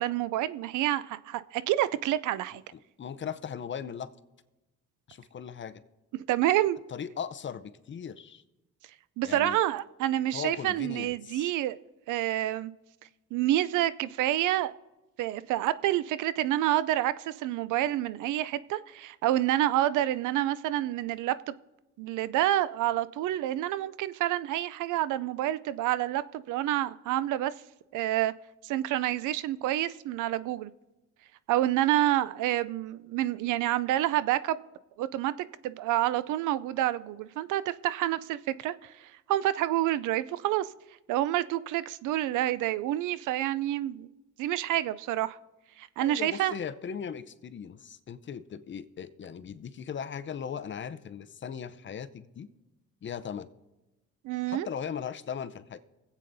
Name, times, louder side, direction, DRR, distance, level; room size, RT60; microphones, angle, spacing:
voice 1, 0.0-2.6 6.1-6.8 9.2-11.8 12.1-12.7 13.3-14.7 15.2-21.5 22.0-27.5 27.9-28.3 28.6-30.7 31.5-34.6 35.0-35.3 35.6-40.7 41.1-44.1 44.4-45.4 45.8-46.5 54.2-54.7, right 13 dB, 80° right, 0.5 m, -28 dB
voice 2, 2.7-4.1 5.1-5.8 6.9-8.4 9.2-9.6 10.3-11.5 46.0-52.5 53.0-53.5 54.5-55.8, left 7 dB, 40° left, 0.6 m, -38 dB
24.0 x 8.3 x 2.7 m
cardioid pair, 90°, 30 cm